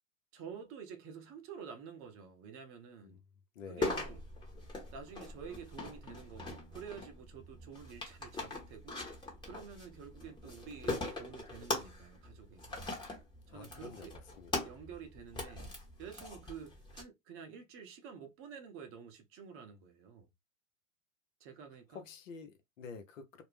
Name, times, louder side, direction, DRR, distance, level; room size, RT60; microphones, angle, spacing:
voice 1, 0.3-3.2 3.7-4.2 4.9-9.0 9.4-12.8 13.5-14.2 14.6-15.7 16.0-20.3 21.4-22.0, right 6 dB, 30° right, 0.7 m, -49 dB
voice 2, 3.5-3.9 13.5-14.7 21.9-23.4, left 5 dB, 70° left, 0.8 m, -49 dB
sound 1, 3.8-17.0, left 2 dB, 10° left, 0.9 m, -42 dB
2.5 x 2.0 x 3.2 m
hypercardioid pair, 105°, 41 cm